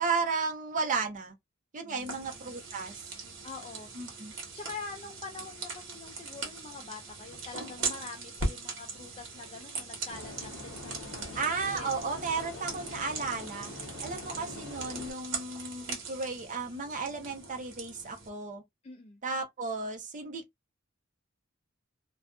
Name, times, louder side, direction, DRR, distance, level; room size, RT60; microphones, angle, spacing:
voice 1, 0.0-1.4 1.7-3.0 3.9-4.3 11.3-13.7 14.0-18.6 19.2-20.4, right 4 dB, 40° right, 0.7 m, -34 dB
voice 2, 1.8-2.4 3.4-4.0 4.6-11.9 12.3-12.8 18.8-19.2, left 4 dB, 30° left, 0.4 m, -45 dB
sound 1, 2.0-18.3, right 4 dB, 65° right, 1.2 m, -40 dB
sound 2, 10.1-15.1, left 2 dB, 60° left, 0.8 m, -44 dB
2.5 x 2.3 x 2.3 m
head